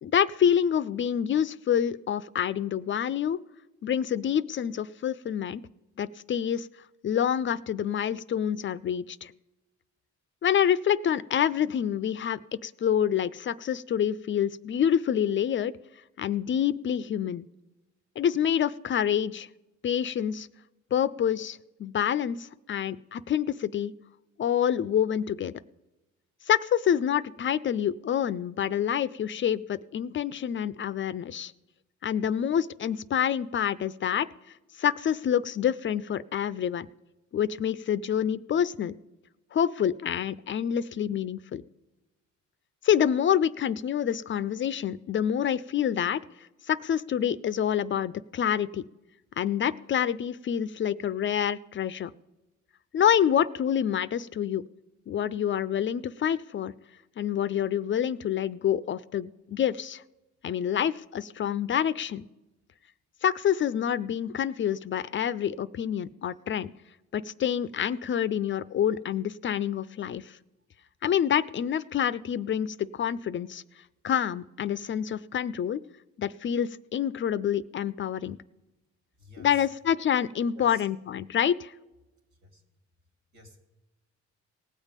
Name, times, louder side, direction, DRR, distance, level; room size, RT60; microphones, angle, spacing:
voice 1, 0.0-3.4 3.8-5.6 6.0-6.7 7.0-9.3 10.4-15.7 16.2-17.5 18.2-19.5 19.8-20.5 20.9-23.9 24.4-25.5 26.5-31.5 32.0-34.3 34.8-36.9 37.3-38.9 39.5-41.6 42.8-46.2 46.6-48.8 49.4-52.1 52.9-54.6 55.1-56.7 57.2-60.0 60.4-62.3 63.2-66.7 67.1-70.4 71.0-73.6 74.0-75.8 76.2-78.4 79.4-81.7, left 9 dB, 40° left, 16 dB, 0.4 m, -27 dB
voice 2, 79.2-79.7 80.5-80.9 82.4-82.6 83.3-83.6, equal, 75° right, 4 dB, 2.3 m, -50 dB
18.5 x 7.3 x 5.1 m, 1.0 s
cardioid pair, 90°, 30 cm